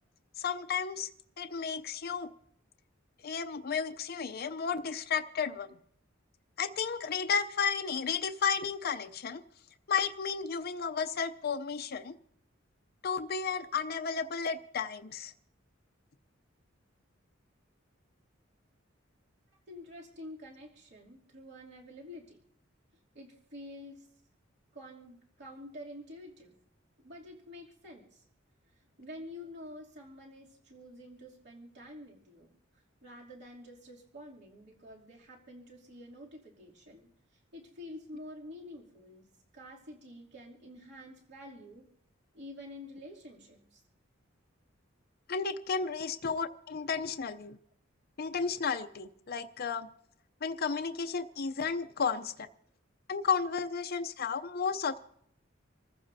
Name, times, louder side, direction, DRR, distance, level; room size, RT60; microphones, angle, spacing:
voice 1, 0.4-1.1 1.4-2.3 3.2-5.7 6.6-9.4 9.9-12.2 13.0-15.3 45.3-47.6 48.2-49.9 50.4-52.5 53.1-55.0, left 6 dB, 50° left, 8 dB, 0.6 m, -33 dB
voice 2, 19.7-22.4 23.1-24.1 24.7-26.5 27.0-28.2 29.0-32.6 33.0-37.1 37.5-39.3 39.5-41.9 42.3-43.8, left 1 dB, 60° right, -3 dB, 2.8 m, -48 dB
27.0 x 14.5 x 2.7 m, 0.70 s
head